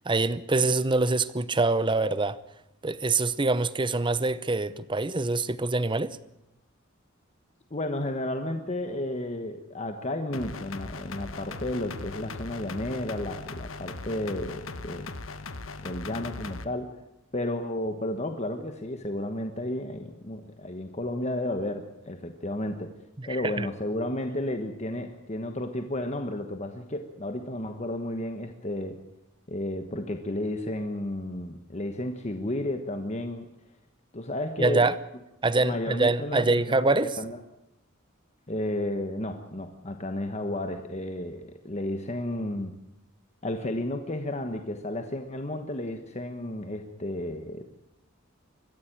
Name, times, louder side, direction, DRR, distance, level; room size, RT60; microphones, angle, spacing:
voice 1, 0.0-2.4 2.8-6.2 23.2-23.7 34.6-35.0 35.4-37.2, right 3 dB, 25° right, 0.8 m, -25 dB
voice 2, 7.7-15.1 15.8-16.9 17.3-22.9 23.3-29.0 29.5-33.5 34.1-34.9 35.6-37.4 38.5-42.7 43.4-47.7, left 1 dB, 35° left, 1.3 m, -32 dB
sound 1, 10.3-16.7, left 3 dB, 75° left, 1.2 m, -39 dB
22.5 x 14.5 x 9.0 m
head